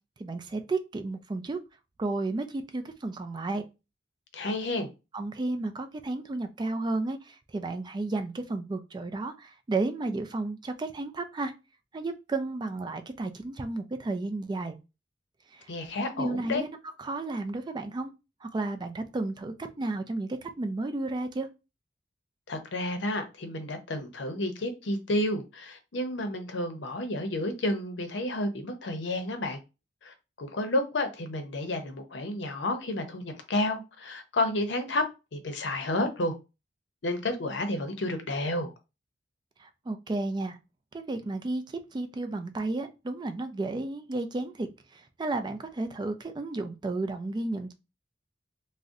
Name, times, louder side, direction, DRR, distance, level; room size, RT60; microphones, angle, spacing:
voice 1, 0.2-1.6 2.0-3.6 5.1-11.5 11.9-14.8 15.5-15.7 16.2-18.1 18.4-21.5 39.6-40.6 40.9-47.7, right 2 dB, 25° right, 0.3 m, -33 dB
voice 2, 4.3-4.9 15.7-16.6 22.5-29.6 30.0-35.0 35.3-36.4 37.0-38.7, left 1 dB, 75° left, 0.6 m, -31 dB
2.6 x 2.0 x 3.6 m
head